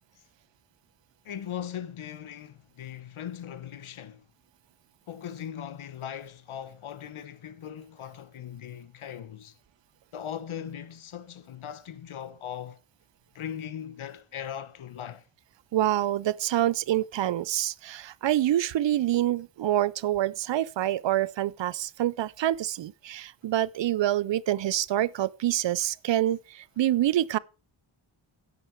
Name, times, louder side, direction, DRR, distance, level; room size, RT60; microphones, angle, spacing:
voice 1, 1.2-4.2 5.1-9.5 10.1-12.8 13.3-15.2, left 9 dB, 75° left, 1.0 m, -39 dB
voice 2, 15.7-27.4, right 13 dB, 65° right, 0.5 m, -26 dB
10.0 x 8.3 x 4.5 m
wide cardioid pair, 105°, 49 cm